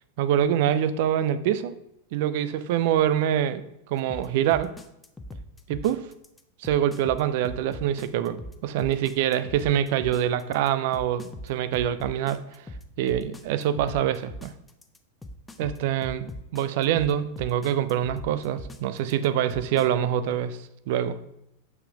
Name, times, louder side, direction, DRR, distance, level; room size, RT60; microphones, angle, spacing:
voice 1, 0.2-1.7 2.1-4.7 5.7-6.1 6.6-12.4 13.0-14.5 15.6-20.6 20.9-21.2, right 10 dB, 50° right, 13 dB, 0.5 m, -25 dB
sound 1, 4.1-19.9, left 1 dB, 10° left, 0.7 m, -40 dB
5.9 x 5.6 x 5.1 m, 0.83 s
figure-of-eight pair, 90°, 0 cm